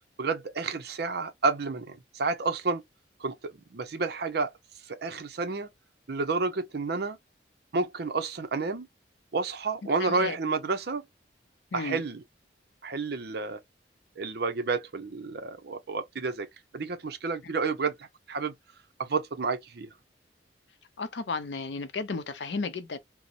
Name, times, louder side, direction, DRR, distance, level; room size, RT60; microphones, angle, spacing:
voice 1, 0.2-2.8 3.2-4.5 4.9-5.7 6.1-7.2 7.7-8.9 9.3-11.0 11.7-12.2 12.8-13.6 14.2-16.5 16.7-18.5 19.0-19.9, right 4 dB, 60° right, 0.6 m, -30 dB
voice 2, 10.0-10.4 11.7-12.0 21.0-23.0, left 4 dB, 70° left, 0.5 m, -33 dB
2.9 x 2.0 x 2.5 m
head